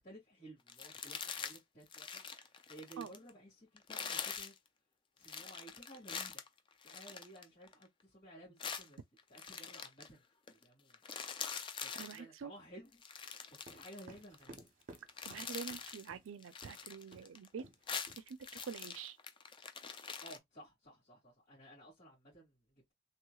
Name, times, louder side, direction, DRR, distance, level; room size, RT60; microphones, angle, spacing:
voice 1, 0.0-4.5 5.2-6.5 6.8-9.0 9.3-10.2 10.5-11.0 11.8-13.0 13.5-14.7 20.2-22.6, right 1 dB, 45° left, 2.2 m, -55 dB
sound 1, 0.7-1.6 1.9-3.3 3.8-4.6 5.2-7.9 8.6-10.1 10.5-10.6 10.9-12.2 12.9-14.6 14.9-16.1 16.4-17.5 17.7-20.4, left 6 dB, 25° left, 0.3 m, -44 dB
voice 2, 12.0-12.5 15.3-17.6 18.3-19.2, right 6 dB, 75° right, 0.4 m, -46 dB
sound 2, 13.6-16.3 16.6-16.8 17.1-17.3 17.6-17.8 18.1-18.7, right 2 dB, 40° right, 0.9 m, -56 dB
3.3 x 3.0 x 2.3 m
head